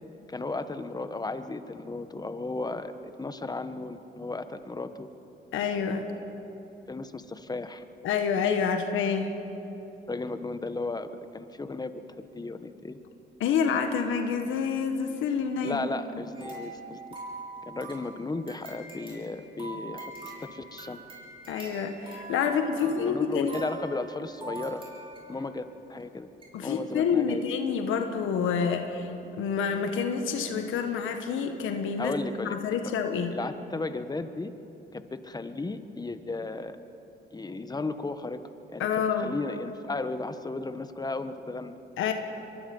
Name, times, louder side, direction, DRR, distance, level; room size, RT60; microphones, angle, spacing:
voice 1, 0.3-5.1 6.9-7.8 10.1-11.9 12.3-13.0 15.6-17.0 17.7-21.1 22.8-24.8 25.3-26.3 26.6-27.5 32.0-32.6 32.8-32.9 33.3-34.5 34.9-36.8 37.3-38.4 38.7-38.9 39.2-41.8, left 3 dB, 20° left, 10 dB, 1.2 m, -35 dB
voice 2, 5.5-6.1 8.0-9.3 13.4-15.8 21.5-23.6 26.5-29.1 29.4-32.1 32.4-33.3 38.8-39.4 42.0-42.1, left 6 dB, 85° left, 6 dB, 1.5 m, -28 dB
sound 1, 16.3-25.5 26.0-26.1 26.4-26.5, right 2 dB, 25° right, 6.3 m, -43 dB
24.0 x 22.5 x 5.4 m, 2.9 s
cardioid pair, 90°, 20 cm